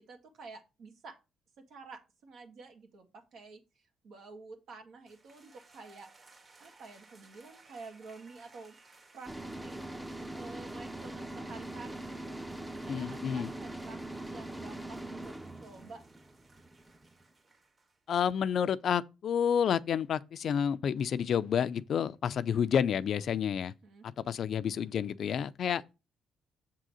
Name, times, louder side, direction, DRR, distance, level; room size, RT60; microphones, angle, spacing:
voice 1, 0.1-1.1 1.7-3.6 4.0-6.1 6.6-8.7 9.1-9.3 9.6-9.8 10.3-12.4 12.8-16.0 23.8-24.0, right 4 dB, 75° right, 1.7 m, -50 dB
sound 1, 5.1-18.3, right 3 dB, 40° right, 1.7 m, -60 dB
sound 2, 9.3-17.2, right 1 dB, 10° right, 0.6 m, -42 dB
voice 2, 12.9-13.5 18.1-23.7 24.0-25.8, left 8 dB, 60° left, 0.4 m, -30 dB
7.5 x 3.8 x 6.3 m
cardioid pair, 90°, 0 cm